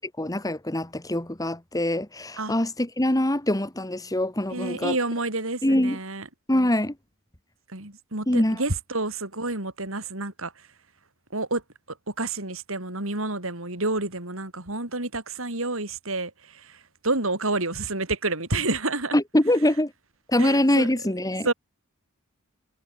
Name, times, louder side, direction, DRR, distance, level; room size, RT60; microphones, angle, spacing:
voice 1, 0.2-5.0 5.6-6.0 6.5-7.0 8.3-8.6 19.1-19.9 20.3-21.5, left 1 dB, 15° left, 1.9 m, -24 dB
voice 2, 4.5-6.3 7.7-10.7 11.3-11.6 12.1-19.1 20.4-20.9 21.4-21.5, right 2 dB, 65° right, 4.9 m, -29 dB
head